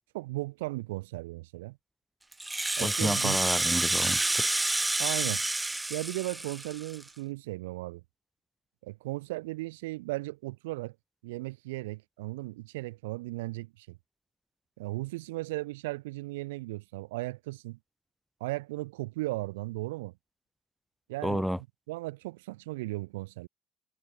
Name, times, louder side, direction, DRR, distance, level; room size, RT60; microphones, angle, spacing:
voice 1, 0.1-1.8 2.8-3.4 5.0-5.5 5.9-8.0 8.8-10.9 11.2-14.0 14.8-17.8 18.4-20.1 21.1-23.5, right 20 dB, 80° right, 2.8 m, -36 dB
Rattle (instrument), 2.3-7.1, right 2 dB, 15° right, 0.6 m, -29 dB
voice 2, 2.8-4.5 21.2-21.6, equal, ahead, 1.2 m, -31 dB
hypercardioid pair, 50°, 0 cm